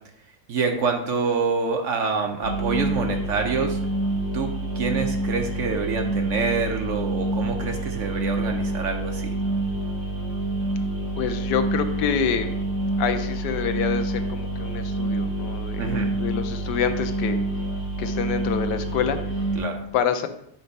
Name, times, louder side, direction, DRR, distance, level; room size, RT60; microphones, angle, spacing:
voice 1, 0.5-3.8 4.3-9.3 15.8-16.1 19.6-19.8, right 5 dB, 60° right, 4 dB, 0.8 m, -26 dB
sound 1, 2.4-19.6, right 2 dB, 35° right, 1.8 m, -27 dB
voice 2, 11.2-12.6 13.0-17.4 18.0-19.5 19.9-20.3, left 8 dB, 85° left, 8 dB, 1.3 m, -27 dB
6.9 x 3.3 x 5.3 m, 0.75 s
omnidirectional pair, 1.8 m